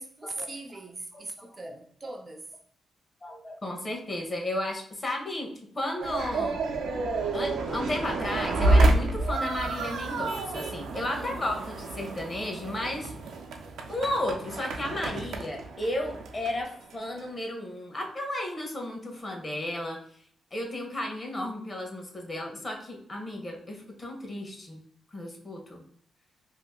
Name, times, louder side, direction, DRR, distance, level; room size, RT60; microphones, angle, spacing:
voice 1, 0.0-2.5 11.0-11.7, right 2 dB, 30° right, 0.4 m, -41 dB
voice 2, 1.1-1.7 3.2-5.5 5.7-6.6 7.3-13.1 13.9-20.0 20.5-24.8 25.1-25.8, left 1 dB, 30° left, 1.0 m, -33 dB
sound 1, 6.0-17.3, right 2 dB, 85° right, 0.5 m, -29 dB
2.8 x 2.5 x 3.6 m
cardioid pair, 100°, 0 cm